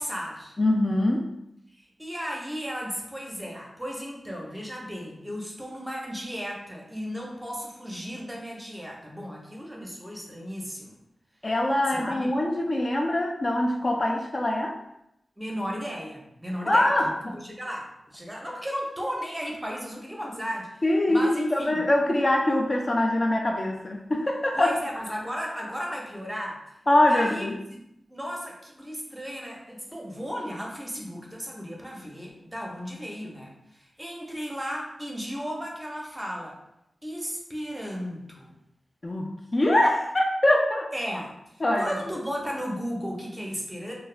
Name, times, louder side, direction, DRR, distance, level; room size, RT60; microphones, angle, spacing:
voice 1, 0.0-0.6 1.7-11.0 11.9-12.3 15.4-16.9 17.3-20.8 21.1-21.9 24.5-26.6 27.1-27.5 28.1-36.6 37.0-38.5 40.9-41.3 41.8-43.9, equal, 10° right, -2 dB, 0.6 m, -35 dB
voice 2, 0.6-1.3 11.4-14.8 16.7-17.4 20.8-24.7 26.9-27.6 39.0-40.9 41.6-42.0, left 1 dB, 40° left, 0 dB, 0.3 m, -23 dB
2.3 x 2.0 x 3.2 m, 0.82 s
wide cardioid pair, 70°, 0 cm